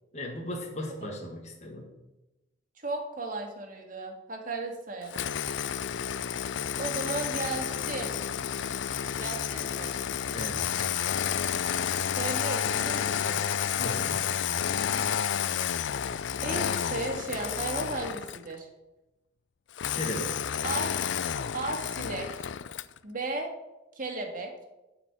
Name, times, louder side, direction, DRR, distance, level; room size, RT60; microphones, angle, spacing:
voice 1, 0.1-1.9 10.3-10.9 13.8-14.2 19.9-20.5, left 1 dB, 40° left, 0 dB, 1.6 m, -37 dB
voice 2, 2.8-5.3 6.8-8.2 9.2-10.0 12.2-13.5 16.4-18.7 20.6-20.9 21.5-22.5 23.0-23.5 24.0-24.5, right 2 dB, 50° right, 2 dB, 2.0 m, -35 dB
Engine starting, 5.1-18.5 19.8-23.0, left 8 dB, 80° left, 0.4 m, -30 dB
10.5 x 5.0 x 8.2 m, 1.0 s
head